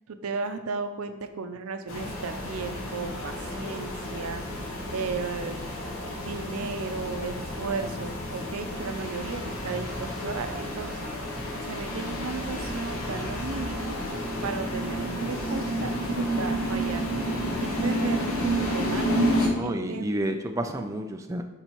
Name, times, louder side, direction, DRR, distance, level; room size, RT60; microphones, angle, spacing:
voice 1, 0.1-5.6 6.2-11.1 11.7-20.1, right 4 dB, 90° right, 8 dB, 0.6 m, -35 dB
sound 1, 1.9-19.5, equal, 75° left, 1.1 m, -30 dB
voice 2, 19.4-21.4, right 1 dB, 15° right, 5 dB, 0.3 m, -30 dB
9.9 x 4.0 x 3.0 m, 1.0 s
head